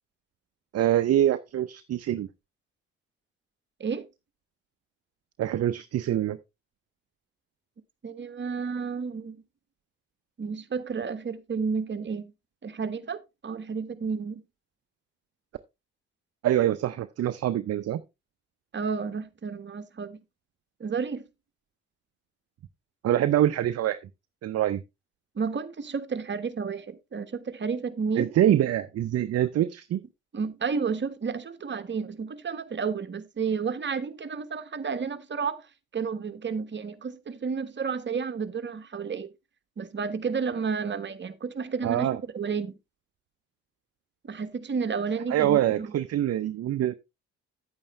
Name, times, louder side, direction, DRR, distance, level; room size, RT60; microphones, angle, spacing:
voice 1, 0.7-2.3 5.4-6.4 16.4-18.0 23.0-24.0 24.4-24.8 28.2-30.0 41.8-42.2 45.3-46.9, right 12 dB, 50° right, 0.7 m, -25 dB
voice 2, 8.0-9.4 10.4-12.3 12.6-14.4 18.7-20.2 20.8-21.2 25.3-28.3 30.3-35.6 35.9-39.3 39.8-42.1 42.3-42.7 44.2-45.9, right 5 dB, 35° right, 1.4 m, -31 dB
9.9 x 8.7 x 3.2 m
hypercardioid pair, 55°, 32 cm